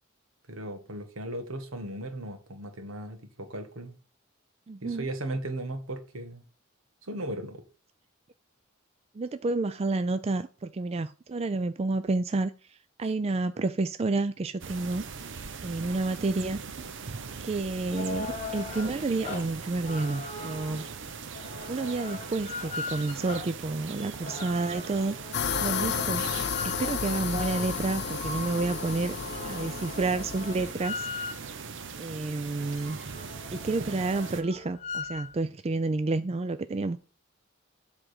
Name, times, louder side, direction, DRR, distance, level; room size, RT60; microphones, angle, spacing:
voice 1, 0.5-3.9 4.8-6.4 7.1-7.6, right 1 dB, 80° right, 1.4 m, -36 dB
voice 2, 4.7-5.1 9.2-12.5 13.0-15.0 15.6-16.6 17.4-20.8 21.7-25.2 25.6-26.2 26.6-29.1 29.4-31.1 32.0-33.0 33.5-37.0, right 3 dB, 30° right, 0.4 m, -30 dB
sound 1, 14.6-34.4, right 5 dB, 60° right, 0.8 m, -40 dB
sound 2, 17.7-31.7 32.1-32.2 32.5-35.4, left 4 dB, 30° left, 1.7 m, -40 dB
sound 3, 25.3-30.7, left 6 dB, 55° left, 0.7 m, -32 dB
7.7 x 3.7 x 6.4 m
head